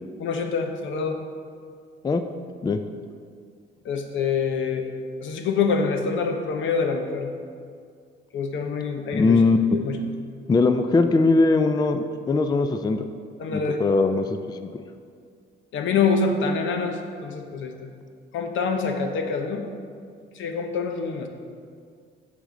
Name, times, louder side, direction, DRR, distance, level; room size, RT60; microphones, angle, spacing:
voice 1, 0.2-1.2 3.8-4.9 5.2-7.3 8.3-9.4 9.7-10.1 13.4-13.8 15.7-17.7 18.3-19.6 20.3-21.3, left 5 dB, 75° left, 5 dB, 0.8 m, -26 dB
voice 2, 9.1-9.8 10.5-13.0 13.5-14.7, left 3 dB, 20° left, 8 dB, 0.3 m, -20 dB
8.4 x 4.9 x 3.8 m, 2.2 s
cardioid pair, 90°, 20 cm